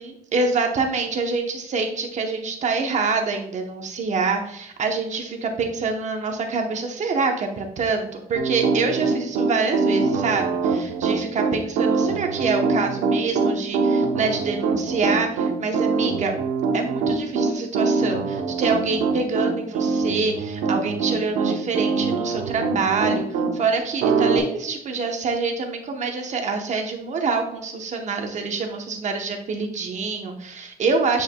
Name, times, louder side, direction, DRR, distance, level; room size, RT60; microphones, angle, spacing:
voice 1, 0.0-16.3 16.7-31.2, right 4 dB, 45° right, 3 dB, 0.9 m, -26 dB
Piano, 8.4-23.5 24.0-24.4, right 4 dB, 90° right, 0.9 m, -23 dB
8.8 x 4.8 x 2.2 m, 0.77 s
cardioid pair, 110°, 17 cm